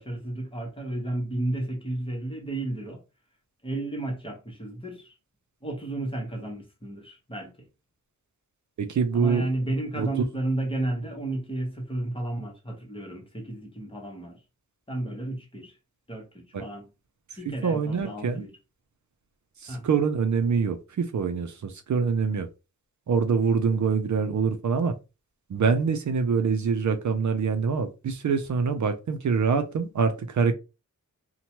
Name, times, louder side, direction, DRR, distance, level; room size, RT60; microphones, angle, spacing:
voice 1, 0.0-3.0 3.6-5.1 5.6-7.6 9.1-14.4 14.9-15.8 16.1-16.9 17.4-18.6 19.7-19.9, right 1 dB, 15° left, 1.0 m, -32 dB
voice 2, 8.8-9.5 10.0-10.1 16.5-16.6 17.6-18.4 19.6-22.5 23.1-24.9 25.5-30.5, right 5 dB, 60° right, 0.5 m, -25 dB
2.9 x 2.2 x 2.8 m
wide cardioid pair, 130°, 33 cm